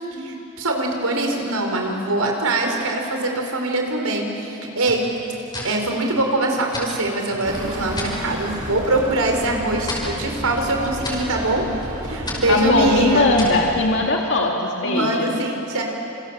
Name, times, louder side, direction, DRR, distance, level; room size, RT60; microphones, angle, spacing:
voice 1, 0.1-5.1 5.6-11.7 12.0-13.3 14.8-15.8, right 2 dB, 80° right, 2 dB, 4.6 m, -23 dB
sound 1, 4.8-8.2 8.6-9.1 9.4-13.7, left 2 dB, 20° left, 5.6 m, -34 dB
sound 2, 7.4-14.1, right 1 dB, 40° right, 6.2 m, -32 dB
voice 2, 12.5-15.3, left 2 dB, 55° left, -1 dB, 2.4 m, -19 dB
28.5 x 28.0 x 7.5 m, 3.0 s
head